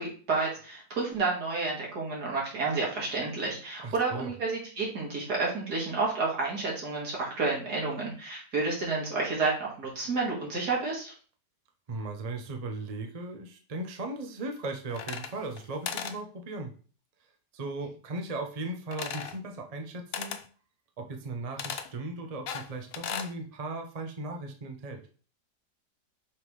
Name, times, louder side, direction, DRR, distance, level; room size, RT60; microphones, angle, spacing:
voice 1, 0.0-11.1, right 3 dB, 70° right, -3 dB, 2.8 m, -30 dB
voice 2, 3.8-4.3 11.9-16.7 17.5-20.4 21.0-25.0, right 2 dB, 35° right, 3 dB, 0.7 m, -37 dB
sound 1, 14.9-15.6 15.8-16.2 18.9-19.4 20.1-20.4 21.6-21.9 22.5-23.3, left 7 dB, 90° left, 0.5 m, -36 dB
5.8 x 3.6 x 4.7 m, 0.40 s
omnidirectional pair, 1.8 m